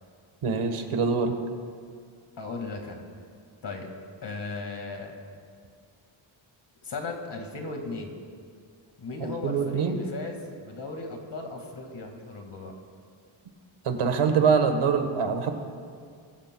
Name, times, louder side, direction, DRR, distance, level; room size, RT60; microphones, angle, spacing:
voice 1, 0.4-1.3 9.2-10.0 13.8-15.5, right 5 dB, 80° right, 6 dB, 1.4 m, -24 dB
voice 2, 2.4-3.0 3.6-3.9 4.2-5.1 6.8-8.1 9.0-12.7, left 3 dB, 55° left, 3 dB, 2.0 m, -36 dB
23.0 x 14.0 x 2.3 m, 2.2 s
wide cardioid pair, 150°, 50 cm